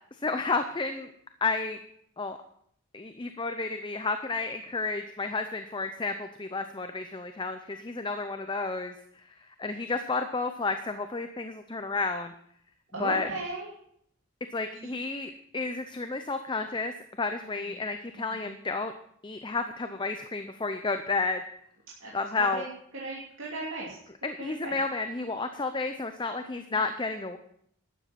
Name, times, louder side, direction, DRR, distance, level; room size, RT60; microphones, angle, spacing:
voice 1, 0.2-1.1 1.4-1.8 2.2-2.4 2.9-8.9 9.5-12.3 13.0-13.3 14.5-18.9 19.2-21.4 22.1-22.6 24.2-27.4, left 3 dB, 20° left, 8 dB, 0.6 m, -31 dB
voice 2, 12.9-13.7 14.7-14.9 18.3-18.5 22.0-22.1 22.4-22.7 23.0-24.0 24.4-24.7 26.5-26.7, right 2 dB, 65° right, -5 dB, 2.7 m, -37 dB
12.5 x 9.9 x 5.9 m, 0.67 s
head